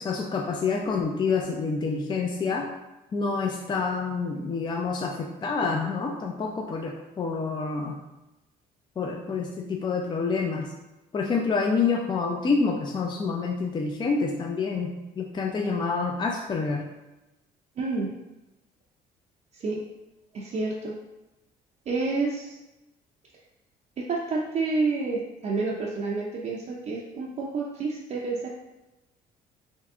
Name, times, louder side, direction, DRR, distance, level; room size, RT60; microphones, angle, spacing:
voice 1, 0.0-2.7 3.1-8.0 9.0-10.7 11.1-16.8, left 4 dB, 25° left, 1 dB, 0.4 m, -27 dB
voice 2, 17.8-18.2 19.5-19.8 20.3-21.0 21.9-22.6 24.0-28.5, right 3 dB, 45° right, -3 dB, 0.5 m, -29 dB
3.6 x 3.2 x 3.6 m, 0.99 s
cardioid pair, 110°, 17 cm